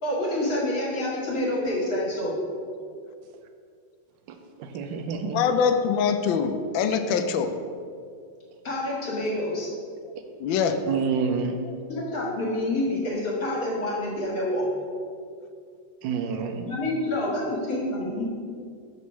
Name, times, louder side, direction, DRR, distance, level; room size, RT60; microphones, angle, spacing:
voice 1, 0.0-2.3 8.6-9.7 11.9-14.7 16.7-18.3, left 1 dB, 50° left, -5 dB, 2.1 m, -27 dB
voice 2, 4.6-5.4 10.9-11.6 16.0-16.7, right 5 dB, 75° right, 6 dB, 1.3 m, -28 dB
voice 3, 5.3-7.5 10.4-10.8, left 6 dB, 85° left, 8 dB, 1.3 m, -23 dB
6.2 x 4.2 x 5.6 m, 2.3 s
omnidirectional pair, 2.0 m